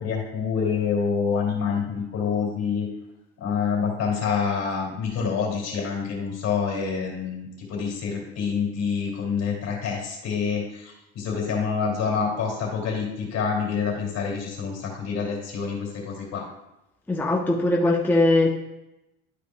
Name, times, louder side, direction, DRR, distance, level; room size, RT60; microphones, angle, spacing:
voice 1, 0.0-2.9 3.4-16.4, left 6 dB, 55° left, -1 dB, 2.6 m, -27 dB
voice 2, 17.1-18.5, left 2 dB, 5° left, -1 dB, 0.7 m, -20 dB
11.5 x 5.1 x 2.3 m, 0.94 s
supercardioid pair, 105°, 32 cm